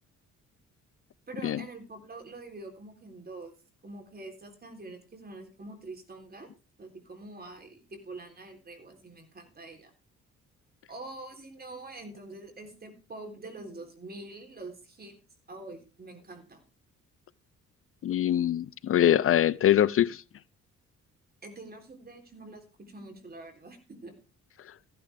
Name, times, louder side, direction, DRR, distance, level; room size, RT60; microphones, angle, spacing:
voice 1, 1.3-3.5 3.8-6.5 6.8-9.9 10.9-15.2 15.5-16.6 21.4-24.2, right 2 dB, 30° right, 3.6 m, -45 dB
voice 2, 18.0-20.2, left 11 dB, 45° left, 0.5 m, -23 dB
15.0 x 10.0 x 3.5 m
cardioid pair, 90°, 30 cm